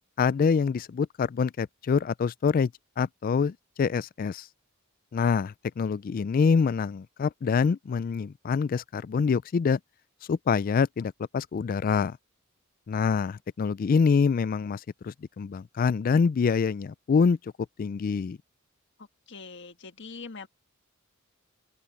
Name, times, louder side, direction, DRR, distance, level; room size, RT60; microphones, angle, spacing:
voice 1, 0.2-2.7 3.0-4.5 5.1-9.8 10.3-12.2 12.9-17.4 17.8-18.4, left 5 dB, 40° left, 0.3 m, -25 dB
voice 2, 19.0-20.5, left 4 dB, 60° left, 1.6 m, -43 dB
open air
head